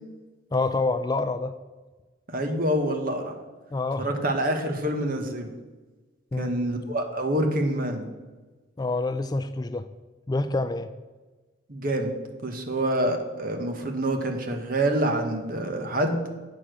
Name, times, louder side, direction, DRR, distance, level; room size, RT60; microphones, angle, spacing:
voice 1, 0.5-1.6 3.7-4.1 6.3-6.6 8.8-9.9 10.3-10.9, left 3 dB, 20° left, 10 dB, 0.3 m, -27 dB
voice 2, 2.3-3.4 4.0-5.5 6.4-8.1 11.7-12.1 12.4-16.2, right 1 dB, 50° right, 5 dB, 1.2 m, -26 dB
8.5 x 6.8 x 6.2 m, 1.3 s
head